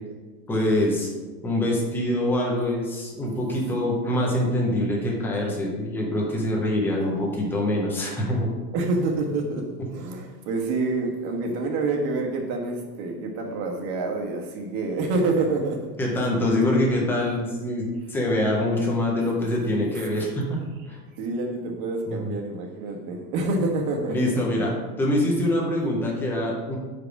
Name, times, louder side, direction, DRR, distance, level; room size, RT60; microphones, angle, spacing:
voice 1, 0.5-1.1 1.4-8.5 16.0-20.6 20.9-21.0 22.1-22.3 24.1-24.7 25.0-26.8, left 1 dB, 5° left, -2 dB, 0.4 m, -24 dB
voice 2, 8.7-15.9 16.4-16.9 21.2-24.3, right 3 dB, 55° right, 2 dB, 1.4 m, -27 dB
5.0 x 4.7 x 5.8 m, 1.4 s
supercardioid pair, 150°, 49 cm